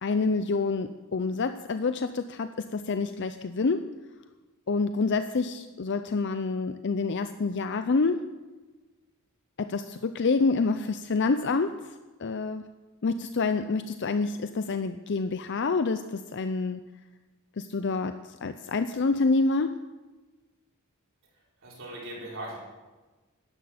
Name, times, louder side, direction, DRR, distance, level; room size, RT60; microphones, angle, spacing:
voice 1, 0.0-3.9 4.7-8.3 9.6-11.8 12.2-12.6 13.0-16.8 17.6-19.8, left 4 dB, 55° left, 10 dB, 0.5 m, -27 dB
voice 2, 21.6-22.6, right 1 dB, 60° right, -5 dB, 5.3 m, -39 dB
12.5 x 10.5 x 7.8 m, 1.2 s
head